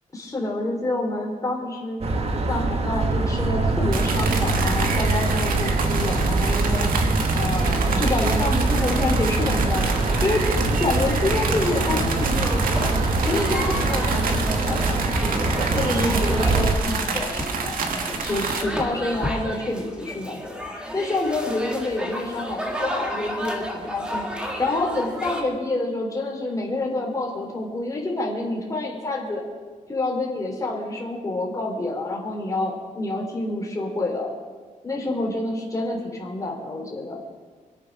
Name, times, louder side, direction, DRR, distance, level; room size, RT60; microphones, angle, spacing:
voice 1, 0.1-2.0 2.5-6.9 7.3-10.4 10.8-12.9 13.2-17.5 18.1-29.4 29.9-34.3 34.8-37.2, left 2 dB, 25° left, -2 dB, 3.6 m, -27 dB
sound 1, 2.0-16.8, right 2 dB, 45° right, 1.7 m, -23 dB
sound 2, 3.9-18.6, right 4 dB, 90° right, 1.7 m, -29 dB
sound 3, 8.2-25.4, equal, 5° right, 2.0 m, -34 dB
25.5 x 8.7 x 6.2 m, 1.4 s
wide cardioid pair, 135°, 14 cm